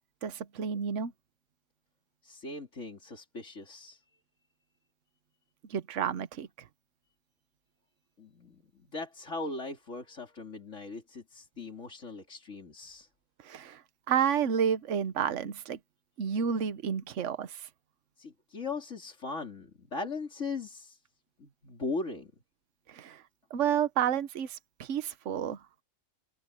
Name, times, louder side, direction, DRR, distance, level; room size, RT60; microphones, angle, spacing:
voice 1, 0.2-1.1 5.7-6.5 13.4-13.8 14.1-15.8 16.2-17.7 22.9-23.2 23.5-25.6, right 8 dB, 70° right, 1.3 m, -30 dB
voice 2, 2.2-4.0 8.2-8.6 8.9-13.1 18.2-21.0 21.4-22.3, left 3 dB, 65° left, 3.6 m, -39 dB
open air
omnidirectional pair, 1.4 m